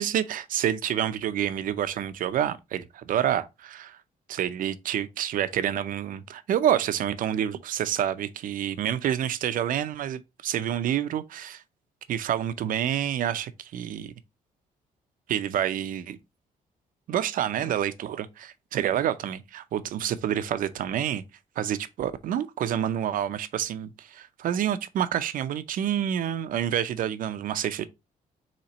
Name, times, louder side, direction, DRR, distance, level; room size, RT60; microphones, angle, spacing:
voice 1, 0.0-4.0 4.3-11.6 12.1-14.1 15.3-16.2 17.1-21.2 21.6-27.9, right 10 dB, 65° right, 0.5 m, -28 dB
4.3 x 2.9 x 3.9 m
cardioid pair, 125°, 15 cm